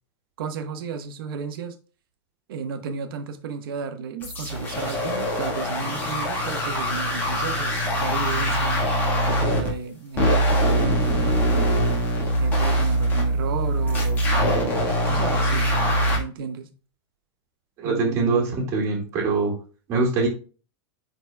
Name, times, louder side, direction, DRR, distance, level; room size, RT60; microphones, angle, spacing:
voice 1, 0.4-1.8 2.5-8.9 9.3-11.7 12.4-15.7 16.1-16.7 17.8-18.7, right 6 dB, 55° right, 1.1 m, -33 dB
sound 1, 4.2-9.7 10.2-16.2, equal, 15° left, 1.5 m, -23 dB
voice 2, 17.8-18.4 18.7-19.5 19.9-20.3, right 4 dB, 20° right, 1.9 m, -23 dB
10.5 x 4.2 x 2.2 m
supercardioid pair, 180°, 14 cm